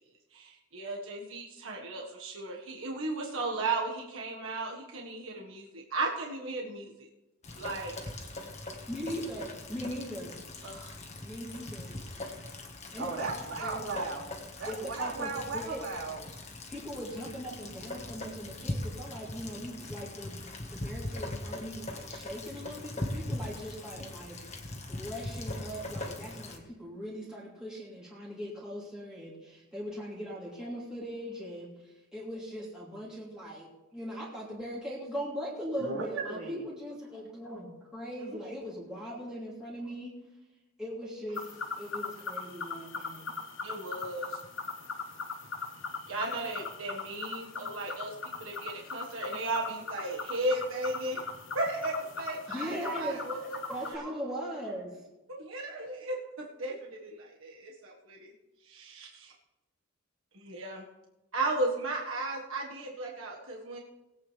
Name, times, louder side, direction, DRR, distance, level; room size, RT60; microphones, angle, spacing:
voice 1, 0.3-7.1 7.5-7.9 10.6-11.0 38.2-38.4 43.6-44.4 46.1-51.3 51.5-53.6 55.3-58.3 58.6-59.3 60.3-60.8 61.3-63.8, right 2 dB, 70° right, -1 dB, 1.6 m, -35 dB
Rain, 7.4-26.6, left 1 dB, 30° left, 1.5 m, -40 dB
voice 2, 8.9-10.3 11.2-12.0 12.9-13.1 13.6-13.8 14.7-15.8 16.7-20.4 20.7-24.4 24.9-40.2 40.8-43.2 52.5-54.9, equal, 5° right, -7 dB, 2.8 m, -40 dB
voice 3, 13.0-14.3 14.6-16.2 35.8-36.6, right 3 dB, 85° right, -6 dB, 4.3 m, -36 dB
sound 1, 41.3-54.0, left 4 dB, 60° left, 1.2 m, -40 dB
20.5 x 8.7 x 3.4 m, 0.99 s
head